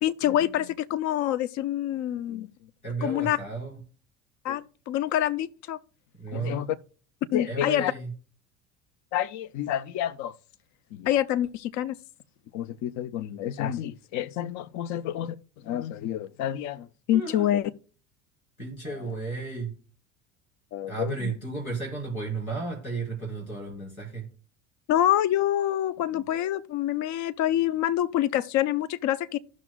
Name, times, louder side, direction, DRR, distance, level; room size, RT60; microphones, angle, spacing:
voice 1, 0.0-2.5 3.0-3.4 4.4-5.8 6.3-6.7 7.3-7.9 9.1-10.3 10.9-12.0 12.5-15.4 15.6-17.7 20.7-21.3 24.9-29.4, left 12 dB, 45° left, 0.7 m, -27 dB
voice 2, 2.8-3.8 6.2-6.7 7.4-8.1 17.1-17.5 18.6-19.7 20.9-24.3, right 3 dB, 90° left, 4.0 m, -33 dB
15.5 x 6.3 x 2.2 m
figure-of-eight pair, 70°, 41 cm